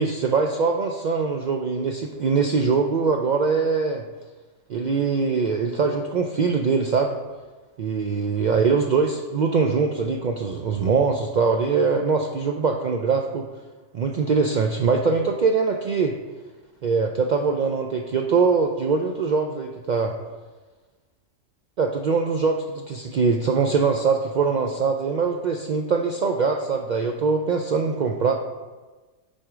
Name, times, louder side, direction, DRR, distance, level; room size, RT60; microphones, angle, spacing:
voice 1, 0.0-4.0 4.7-7.2 7.8-13.5 13.9-16.2 16.8-20.2 21.8-28.3, right 5 dB, 85° right, 3 dB, 0.4 m, -22 dB
7.7 x 4.2 x 4.9 m, 1.3 s
omnidirectional pair, 1.3 m